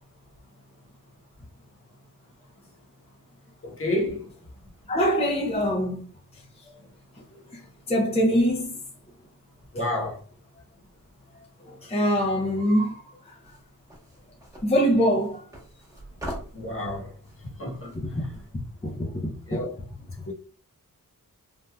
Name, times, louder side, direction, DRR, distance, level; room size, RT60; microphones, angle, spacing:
voice 1, 3.6-4.3 9.7-10.2 16.5-17.1 17.6-18.2 19.5-19.8 20.3-20.4, left 1 dB, 40° left, 1.0 m, -30 dB
voice 2, 4.9-6.0 7.5-7.6 7.9-8.8 11.7-13.0 13.2-13.4 14.6-15.4 17.9-18.3 18.8-19.6, equal, 20° left, 0.6 m, -24 dB
sound 1, 13.4-18.5, equal, 10° right, 1.2 m, -42 dB
3.2 x 2.6 x 2.2 m
wide cardioid pair, 85°, 33 cm